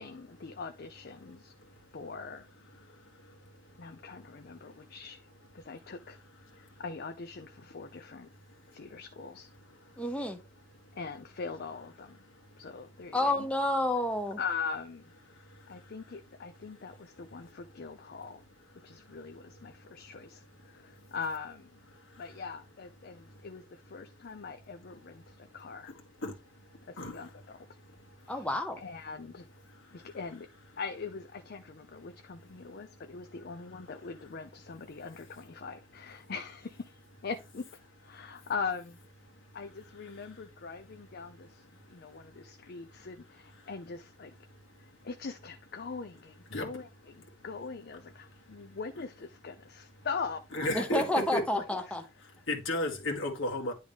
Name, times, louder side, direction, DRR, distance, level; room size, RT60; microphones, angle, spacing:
voice 1, 0.0-1.5 1.9-2.5 3.8-5.2 5.5-6.2 6.6-8.3 8.7-9.5 10.9-12.2 12.6-13.5 14.4-15.1 15.7-18.4 18.8-21.8 22.2-25.9 26.9-27.7 28.2-28.5 28.8-29.5 29.9-30.5 30.8-37.7 38.0-39.0 39.5-41.6 41.9-44.3 44.8-50.4 50.7-50.9 51.6-52.0, left 5 dB, 50° left, 0.5 m, -41 dB
voice 2, 10.0-10.4 13.1-14.4 28.3-28.8 50.7-52.0, left 1 dB, 5° left, 0.8 m, -29 dB
voice 3, 50.5-51.4 52.5-53.7, left 1 dB, 75° left, 1.9 m, -32 dB
10.5 x 3.7 x 3.6 m
head